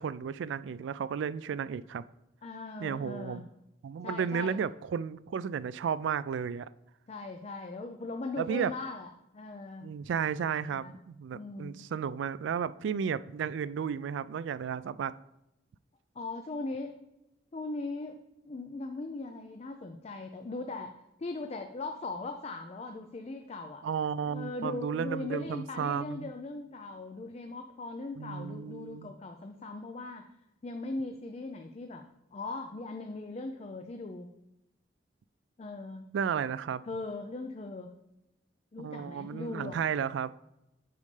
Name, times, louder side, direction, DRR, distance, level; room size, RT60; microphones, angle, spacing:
voice 1, 0.0-2.0 2.8-3.4 3.8-6.7 8.4-8.7 9.8-15.1 23.8-26.3 28.2-29.1 36.1-36.8 38.8-40.3, right 7 dB, 75° right, 16 dB, 0.3 m, -33 dB
voice 2, 2.4-3.4 4.0-4.6 7.1-10.0 10.7-10.9 11.3-11.9 13.1-13.2 16.1-17.0 17.5-18.2 18.4-23.8 24.2-30.3 30.6-32.0 32.3-34.3 35.6-36.1 36.8-37.9 38.7-39.8, left 2 dB, 35° left, 5 dB, 0.4 m, -39 dB
8.4 x 5.4 x 3.2 m, 0.88 s
head